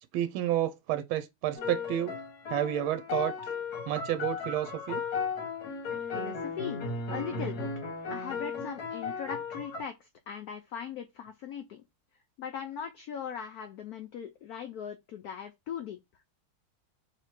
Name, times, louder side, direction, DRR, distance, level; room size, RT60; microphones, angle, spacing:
voice 1, 0.1-2.1 2.5-3.5 3.9-5.0, right 12 dB, 80° right, 1.4 m, -30 dB
sound 1, 1.5-9.8, left 4 dB, 60° left, 1.3 m, -35 dB
voice 2, 6.1-7.7 8.1-11.8 12.4-16.0, left 8 dB, 80° left, 0.8 m, -39 dB
3.2 x 3.0 x 4.3 m
omnidirectional pair, 2.2 m